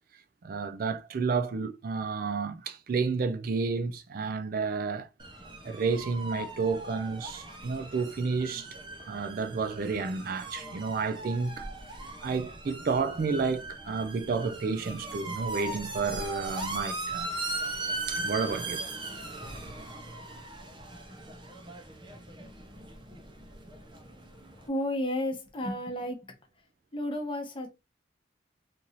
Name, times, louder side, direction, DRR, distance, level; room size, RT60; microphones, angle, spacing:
voice 1, 0.4-5.1 5.6-8.8 9.1-11.7 12.2-17.3 18.1-18.8, right 4 dB, 50° right, 0.3 m, -31 dB
sound 1, 5.2-24.7, right 2 dB, 25° right, 0.7 m, -39 dB
voice 2, 24.5-26.3 26.9-27.7, left 1 dB, 25° left, 0.9 m, -32 dB
3.0 x 2.6 x 3.9 m
head